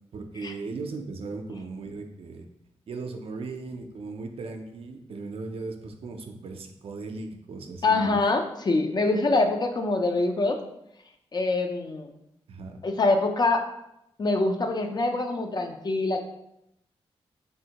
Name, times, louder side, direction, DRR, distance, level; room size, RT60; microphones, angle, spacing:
voice 1, 0.1-2.5 2.9-8.2 12.5-12.8, right 3 dB, 65° right, 5 dB, 0.4 m, -37 dB
voice 2, 7.8-10.6 11.3-12.1 12.8-13.6 14.2-16.2, left 3 dB, 40° left, 5 dB, 0.4 m, -24 dB
3.4 x 2.1 x 2.8 m, 0.81 s
cardioid pair, 60°, 11 cm